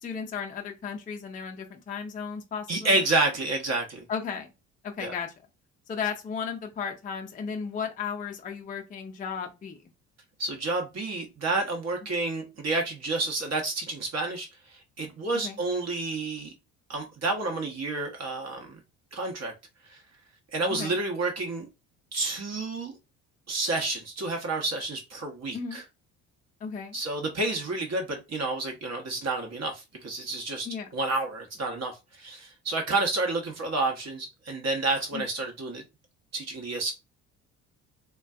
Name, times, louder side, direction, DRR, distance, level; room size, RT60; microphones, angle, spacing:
voice 1, 0.0-3.0 4.1-4.5 4.8-5.3 5.9-9.8 15.3-15.6 20.7-20.9 25.5-25.8 26.6-27.0 30.6-30.9 35.1-35.3, left 6 dB, 20° left, 0.4 m, -35 dB
voice 2, 2.7-4.0 5.0-5.1 10.4-16.5 16.9-18.8 19.1-19.5 19.9-20.0 20.5-21.7 22.1-22.9 23.5-25.8 26.9-30.7 30.9-35.8 36.3-36.9, right 2 dB, 35° right, 0.8 m, -30 dB
2.4 x 2.2 x 2.3 m
hypercardioid pair, 55°, 44 cm